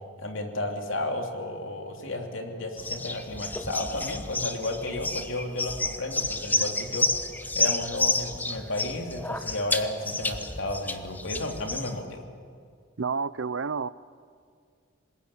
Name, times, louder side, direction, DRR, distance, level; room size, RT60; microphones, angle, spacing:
voice 1, 0.2-7.1 7.5-12.2, left 2 dB, 70° left, 3 dB, 3.1 m, -33 dB
sound 1, 2.8-12.0, left 2 dB, 10° left, 0.9 m, -30 dB
voice 2, 13.0-13.9, right 5 dB, 65° right, 18 dB, 0.6 m, -29 dB
26.0 x 21.0 x 8.5 m, 2.1 s
head